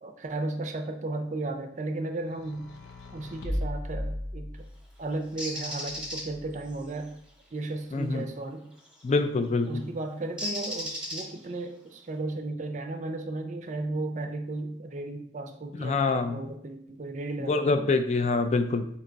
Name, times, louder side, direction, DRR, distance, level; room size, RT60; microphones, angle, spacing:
voice 1, 0.0-2.7 3.1-4.7 5.0-7.1 7.5-8.7 9.6-17.9, right 2 dB, 40° right, 6 dB, 0.5 m, -35 dB
sound 1, 2.2-5.0 5.9-6.8, equal, 80° left, 0.6 m, -36 dB
Bird, 5.4-6.2 8.9-9.1 10.4-11.6, equal, 5° right, 1.0 m, -34 dB
voice 2, 7.9-8.2 9.0-9.9 15.7-16.4 17.5-18.9, left 3 dB, 35° left, 8 dB, 0.3 m, -25 dB
3.8 x 2.8 x 4.5 m, 0.73 s
head